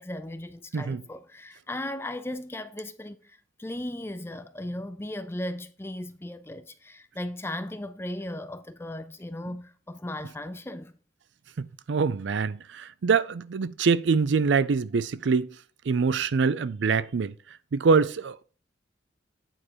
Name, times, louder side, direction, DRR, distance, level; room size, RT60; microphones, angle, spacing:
voice 1, 0.0-11.0, left 1 dB, 15° left, 0.5 m, -37 dB
voice 2, 11.6-15.5 15.9-17.3 17.7-18.4, right 5 dB, 75° right, 0.4 m, -24 dB
9.0 x 4.9 x 4.4 m
head